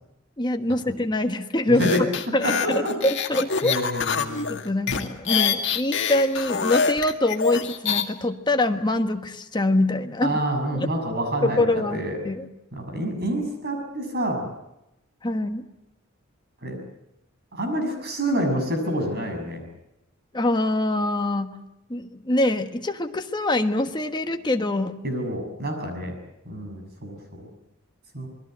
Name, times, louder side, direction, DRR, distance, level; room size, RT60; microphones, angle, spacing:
voice 1, 0.4-3.8 4.5-10.4 10.8-10.9 11.4-12.5 15.2-15.7 20.3-21.5 21.9-25.0, left 1 dB, 20° left, 5 dB, 1.3 m, -24 dB
voice 2, 1.7-2.0 2.4-3.0 3.6-4.6 10.2-12.2 12.7-14.5 16.6-16.8 17.5-19.6 25.0-26.1 26.4-27.5 28.1-28.3, right 1 dB, 50° right, 5 dB, 6.5 m, -27 dB
sound 1, 1.8-8.1, left 6 dB, 60° left, 2.1 m, -25 dB
27.5 x 20.5 x 7.6 m, 0.87 s
head